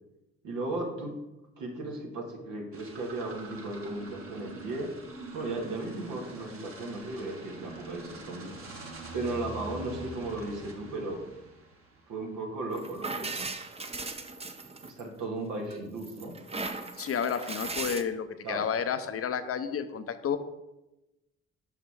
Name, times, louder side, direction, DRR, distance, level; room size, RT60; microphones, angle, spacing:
voice 1, 0.4-1.2 1.6-5.0 5.3-8.5 9.1-11.2 12.1-13.5 14.8-16.4 18.4-18.7, right 2 dB, 75° right, 0 dB, 1.7 m, -36 dB
sound 1, 2.7-12.3, right 2 dB, 45° right, 1.7 m, -44 dB
sound 2, 12.7-15.2 15.7-18.0, right 3 dB, 20° right, 0.7 m, -37 dB
voice 2, 17.0-20.4, left 7 dB, 45° left, 11 dB, 0.8 m, -31 dB
5.8 x 5.6 x 4.8 m, 0.98 s
hypercardioid pair, 50°, 32 cm